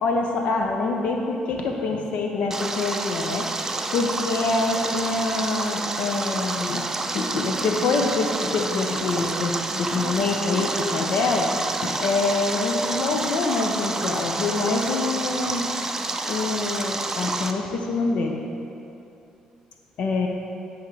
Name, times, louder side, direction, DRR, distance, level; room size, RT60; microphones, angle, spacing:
voice 1, 0.0-3.4 3.9-15.7 16.3-18.4 20.0-20.3, left 3 dB, 70° left, 2 dB, 0.5 m, -25 dB
Stream, 2.5-17.5, right 2 dB, 20° right, 0.4 m, -29 dB
9.6 x 3.5 x 3.3 m, 2.8 s
cardioid pair, 90°, 2 cm